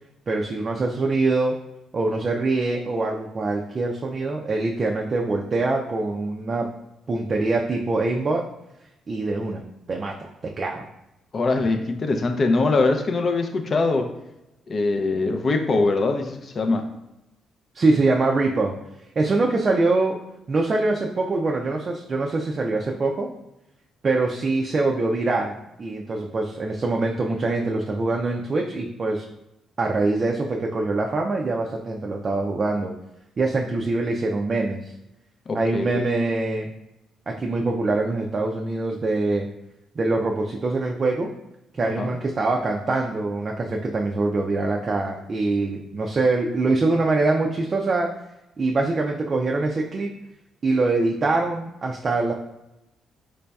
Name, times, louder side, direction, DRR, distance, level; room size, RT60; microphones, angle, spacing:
voice 1, 0.3-1.5 1.9-6.7 7.1-8.4 9.1-9.6 9.9-10.3 10.6-10.8 17.7-18.7 19.2-20.2 20.5-23.3 24.0-29.2 29.8-32.9 33.4-34.9 35.5-36.7 37.3-39.5 40.0-41.3 41.7-48.1 48.6-50.1 50.6-52.3, right 3 dB, 40° right, 0 dB, 0.4 m, -24 dB
voice 2, 11.3-14.1 14.7-16.9 35.5-36.0 42.0-42.1, left 3 dB, 45° left, 6 dB, 0.4 m, -22 dB
3.9 x 3.2 x 2.3 m, 0.90 s
cardioid pair, 90°, 0 cm